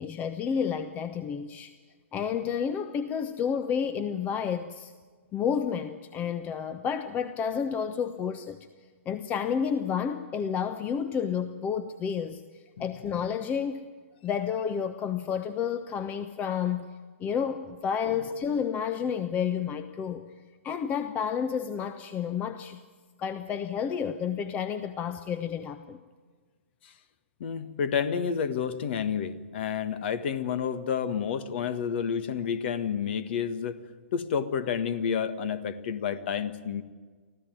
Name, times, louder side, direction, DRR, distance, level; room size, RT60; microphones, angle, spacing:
voice 1, 0.0-1.7 2.1-4.9 5.3-8.6 9.1-12.4 12.8-13.8 14.2-16.9 17.2-20.2 20.6-22.8 23.2-26.0, left 7 dB, 20° left, 11 dB, 1.0 m, -30 dB
voice 2, 27.4-33.8 34.1-36.8, left 7 dB, 50° left, 13 dB, 1.7 m, -30 dB
24.5 x 15.0 x 9.4 m, 1.5 s
figure-of-eight pair, 120°, 7 cm